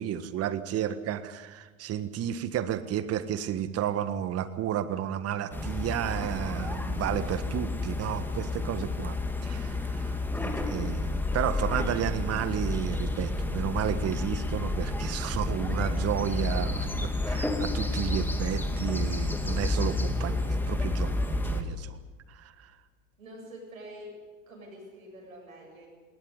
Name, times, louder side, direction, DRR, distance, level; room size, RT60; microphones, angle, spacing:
voice 1, 0.0-9.2 9.4-22.0 22.3-22.4, right 10 dB, 35° right, 12 dB, 1.6 m, -32 dB
sound 1, 5.5-21.6, left 2 dB, 5° left, 2.5 m, -30 dB
voice 2, 23.2-24.1 24.5-25.9, equal, 80° right, 0 dB, 7.8 m, -46 dB
19.0 x 19.0 x 9.7 m, 1.4 s
hypercardioid pair, 85°, 40 cm